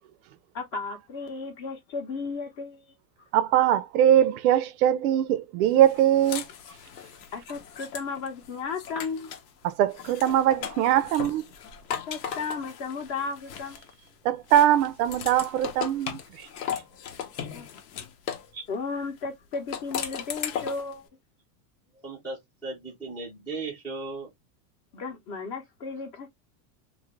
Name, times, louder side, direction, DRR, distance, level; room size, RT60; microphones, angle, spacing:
voice 1, 0.5-2.9 3.2-3.3 7.3-9.3 12.1-13.8 17.3-17.7 18.7-21.1 24.9-26.3, left 4 dB, 35° left, 0.8 m, -34 dB
voice 2, 3.3-6.4 9.6-11.4 14.2-16.5, right 11 dB, 70° right, 0.5 m, -22 dB
sound 1, 5.8-9.5 9.9-14.1 14.5-18.5 19.5-20.9, left 8 dB, 80° left, 0.9 m, -37 dB
voice 3, 22.0-24.3, right 3 dB, 5° left, 0.4 m, -36 dB
2.6 x 2.5 x 3.0 m
supercardioid pair, 170°, 47 cm